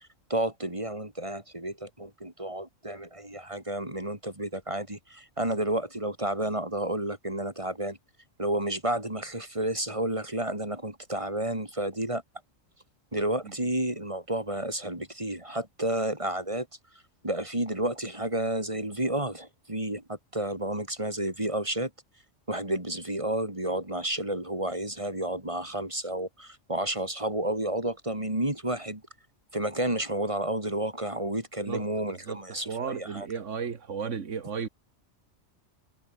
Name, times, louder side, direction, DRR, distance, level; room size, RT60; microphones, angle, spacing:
voice 1, 0.3-8.0 8.4-12.2 13.1-16.7 17.2-21.9 22.5-29.0 29.5-33.3, right 1 dB, 25° right, 4.1 m, -31 dB
voice 2, 32.1-34.7, right 6 dB, 70° right, 1.9 m, -34 dB
omnidirectional pair, 1.3 m